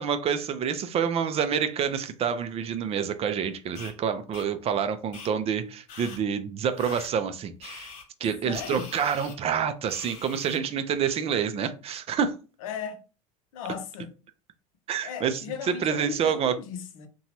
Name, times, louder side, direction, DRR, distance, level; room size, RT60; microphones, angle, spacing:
voice 1, 0.0-7.9 8.2-12.3 14.9-15.4 15.7-16.5, right 7 dB, 35° right, 0.4 m, -27 dB
sound 1, 3.8-3.9 4.3-4.5 5.1-5.3 5.9-6.2 6.8-7.1 7.6-8.0 8.5-9.4 9.9-10.6, left 5 dB, 55° left, 1.1 m, -43 dB
voice 2, 8.4-8.9 12.6-13.0 13.5-14.1 15.0-17.1, left 7 dB, 75° left, 0.6 m, -36 dB
2.8 x 2.2 x 2.9 m
hypercardioid pair, 80°, 18 cm